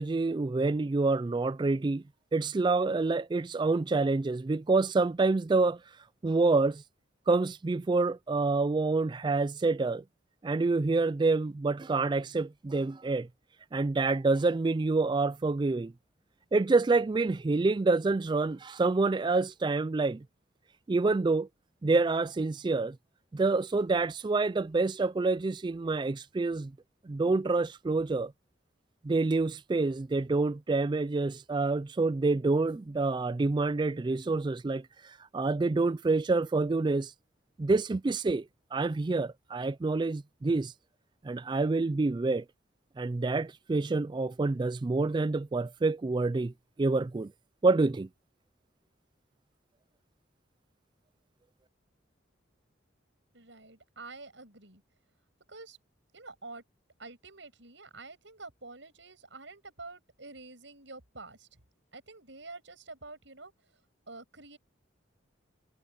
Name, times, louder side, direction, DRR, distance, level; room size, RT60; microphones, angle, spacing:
voice 1, 0.0-2.0 2.3-5.8 6.2-6.8 7.3-10.0 10.4-13.3 13.7-15.9 16.5-20.2 20.9-21.5 21.8-23.0 23.3-26.7 27.0-28.3 29.0-34.9 35.3-37.1 37.6-38.5 38.7-40.7 41.2-42.4 43.0-46.5 46.8-47.3 47.6-48.1, right 3 dB, 25° right, 0.3 m, -27 dB
voice 2, 53.3-54.8 55.5-55.8 56.1-56.6 57.0-61.5 61.9-63.5 64.1-64.6, right 3 dB, 70° right, 7.5 m, -48 dB
head